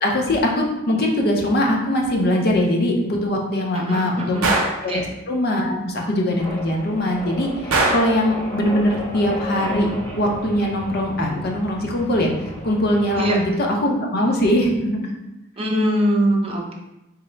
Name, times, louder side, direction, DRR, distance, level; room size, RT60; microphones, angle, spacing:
voice 1, 0.0-4.4 4.8-9.9 10.2-12.3 12.6-15.1, left 1 dB, 45° left, 0 dB, 0.6 m, -21 dB
voice 2, 3.7-4.5 4.9-5.0 13.2-13.4 15.6-16.7, right 1 dB, 25° right, -1 dB, 0.5 m, -22 dB
Gunshot gunfire, 4.4-4.8 7.7-8.2, right 2 dB, 85° right, 0.6 m, -20 dB
sound 1, 6.3-13.5, left 1 dB, 10° left, 0.7 m, -34 dB
3.6 x 2.0 x 4.3 m, 0.92 s
head